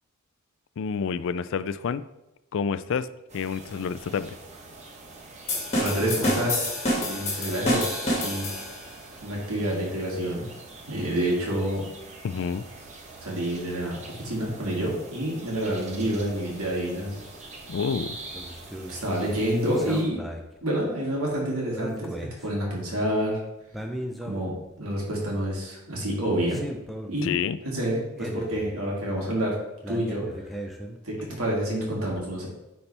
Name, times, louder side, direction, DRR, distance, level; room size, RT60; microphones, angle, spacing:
voice 1, 0.8-2.0 2.5-3.1 3.3-4.4 12.2-12.6 17.7-18.2 27.2-27.6, left 6 dB, 60° left, 14 dB, 0.3 m, -28 dB
sound 1, 3.3-20.0, right 3 dB, 30° right, 0.9 m, -44 dB
sound 2, 5.5-8.9, equal, 30° left, 2.0 m, -27 dB
voice 2, 5.7-6.6 6.8-7.9 8.2-8.5 9.2-10.5 10.9-11.8 13.2-17.2 18.9-20.2 20.6-22.1 22.4-23.4 24.2-26.6 27.1-27.3 27.6-29.6 29.9-30.3 31.0-32.5, right 1 dB, 70° right, -3 dB, 2.4 m, -28 dB
sound 3, 18.3-31.0, equal, ahead, 0.5 m, -39 dB
9.9 x 4.3 x 3.4 m, 0.92 s
head